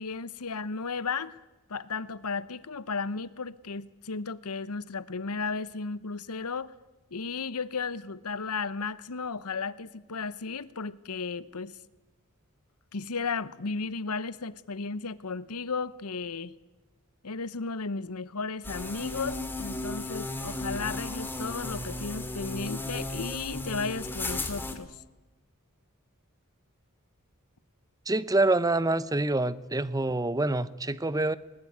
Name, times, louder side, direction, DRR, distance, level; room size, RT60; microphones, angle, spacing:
voice 1, 0.0-1.4 1.7-6.7 7.1-11.8 12.9-16.5 17.2-25.0, left 4 dB, 85° left, 1.0 m, -34 dB
sound 1, 18.6-24.7, left 2 dB, 10° left, 2.3 m, -35 dB
voice 2, 28.1-31.4, right 2 dB, 15° right, 0.8 m, -26 dB
20.5 x 20.0 x 9.5 m
head